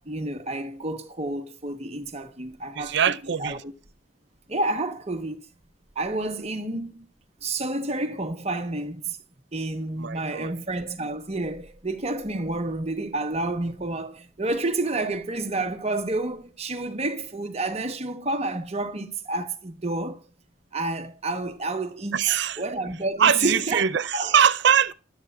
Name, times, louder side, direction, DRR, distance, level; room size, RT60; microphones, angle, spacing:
voice 1, 0.1-3.6 4.5-5.4 5.9-7.1 7.4-9.2 9.5-20.2 20.7-22.2 22.6-23.8 24.1-24.3, right 2 dB, 30° right, 1.1 m, -29 dB
voice 2, 2.8-3.6 10.0-10.5 22.1-22.6 23.2-24.9, right 8 dB, 60° right, 0.5 m, -22 dB
14.0 x 11.5 x 2.4 m
head